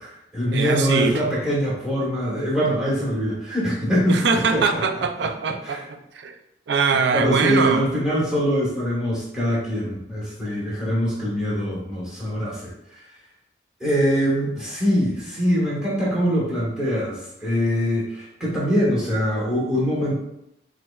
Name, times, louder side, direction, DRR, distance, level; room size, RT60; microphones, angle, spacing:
voice 1, 0.0-5.3 5.6-5.8 7.1-12.7 13.8-20.1, equal, 5° right, -7 dB, 1.1 m, -23 dB
voice 2, 0.5-1.2 4.1-6.3 6.7-7.9, right 5 dB, 70° right, 6 dB, 0.4 m, -22 dB
5.7 x 2.2 x 2.3 m, 0.81 s
head